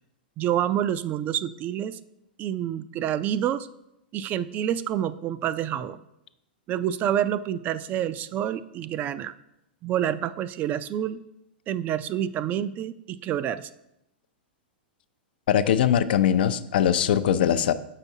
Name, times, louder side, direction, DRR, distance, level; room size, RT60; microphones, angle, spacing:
voice 1, 0.4-2.0 2.4-3.7 4.1-6.0 6.7-9.3 9.8-11.2 11.7-13.7, right 10 dB, 30° right, 14 dB, 0.3 m, -28 dB
voice 2, 15.5-17.7, left 9 dB, 70° left, 12 dB, 0.4 m, -21 dB
7.9 x 5.7 x 2.7 m, 0.83 s
hypercardioid pair, 115°, 5 cm